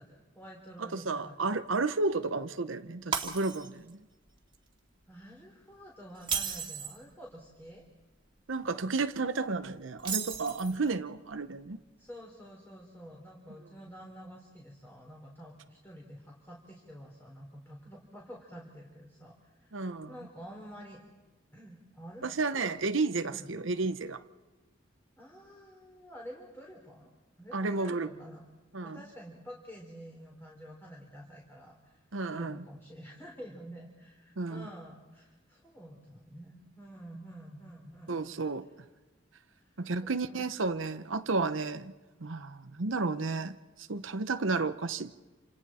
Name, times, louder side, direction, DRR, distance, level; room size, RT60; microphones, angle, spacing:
voice 1, 0.0-1.6 5.1-7.9 12.0-21.0 21.5-22.7 23.3-23.5 25.2-27.1 27.4-28.4 28.8-32.0 32.3-38.4 39.5-39.6 40.0-40.5, equal, 10° left, -1 dB, 3.5 m, -49 dB
voice 2, 0.8-4.0 8.5-11.8 19.7-20.1 22.2-24.2 27.5-28.1 28.7-29.0 32.1-32.6 34.4-34.7 38.1-38.7 39.8-41.9 42.2-45.1, right 3 dB, 75° right, 9 dB, 0.9 m, -32 dB
Shatter, 3.1-3.9 4.3-4.5 6.1-7.0 10.0-10.9, right 6 dB, 25° right, 2.4 m, -34 dB
28.5 x 27.0 x 4.4 m, 1.2 s
head